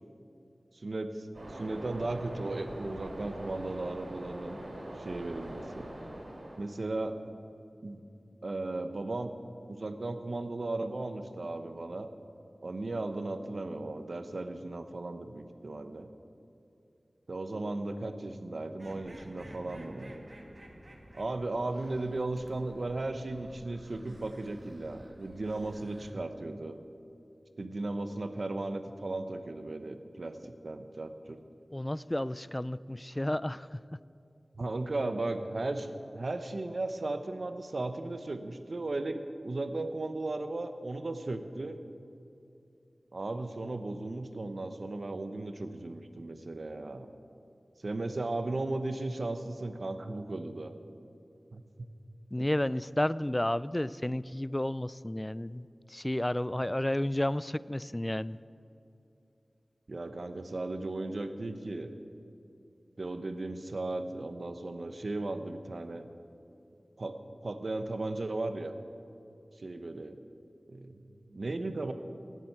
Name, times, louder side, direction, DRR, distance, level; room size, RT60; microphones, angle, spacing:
voice 1, 0.7-4.6 5.0-5.9 6.6-7.2 7.8-8.0 8.4-9.3 9.7-12.1 12.6-16.1 17.3-20.2 21.1-26.8 27.6-31.4 34.5-41.8 43.1-47.1 47.8-50.7 51.5-51.6 52.4-52.5 59.9-61.9 63.0-66.1 67.0-67.2 67.4-68.8 69.6-70.2 70.7-71.9, right 2 dB, 70° right, 8 dB, 0.9 m, -36 dB
Waves surf, 1.3-6.6, right 1 dB, 85° right, 3.1 m, -43 dB
sound 1, 18.8-26.1, right 1 dB, 45° right, 2.1 m, -51 dB
voice 2, 31.7-33.8 52.3-58.4, left 1 dB, 20° left, 18 dB, 0.3 m, -32 dB
16.5 x 7.5 x 8.1 m, 2.7 s
wide cardioid pair, 45°, 0 cm